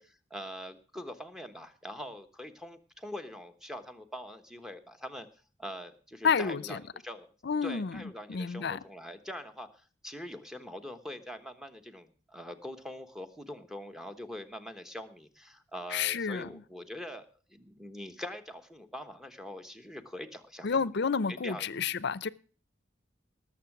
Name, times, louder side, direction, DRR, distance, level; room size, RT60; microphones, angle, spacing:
voice 1, 0.0-5.3 5.6-7.3 7.6-20.8 21.3-21.7, equal, ahead, 1.1 m, -43 dB
voice 2, 6.2-6.8 7.4-8.0 8.3-8.8 15.9-16.5 20.6-22.3, left 6 dB, 60° left, 0.6 m, -30 dB
18.5 x 7.2 x 6.0 m
head